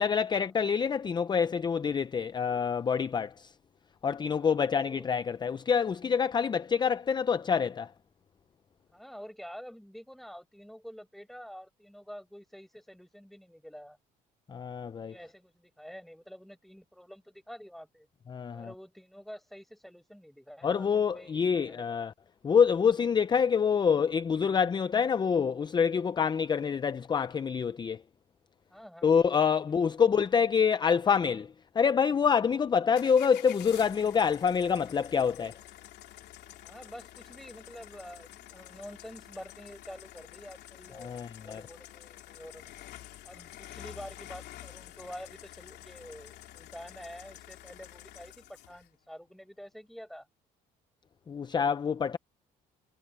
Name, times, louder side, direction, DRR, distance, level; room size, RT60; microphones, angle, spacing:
voice 1, 0.0-3.5 4.0-7.9 14.5-15.1 18.3-18.7 20.6-22.1 22.4-28.0 29.0-35.6 41.0-41.6 51.3-52.2, left 6 dB, 25° left, 0.5 m, -26 dB
voice 2, 4.3-5.1 8.9-14.0 15.0-18.1 18.5-22.1 28.7-29.7 36.6-41.1 41.4-42.7 43.2-50.3, equal, ahead, 5.4 m, -48 dB
sound 1, 32.9-48.9, left 14 dB, 75° left, 3.2 m, -49 dB
cardioid pair, 110°, 17 cm